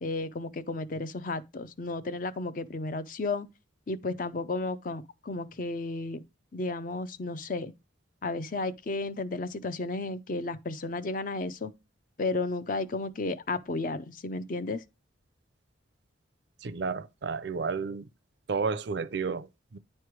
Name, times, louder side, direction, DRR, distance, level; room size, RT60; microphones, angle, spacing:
voice 1, 0.0-3.5 3.9-6.2 6.5-7.7 8.2-11.7 12.2-14.8, left 3 dB, 45° left, 0.5 m, -33 dB
voice 2, 16.6-18.1 18.5-19.8, right 5 dB, 60° right, 0.5 m, -32 dB
9.5 x 3.3 x 4.6 m
head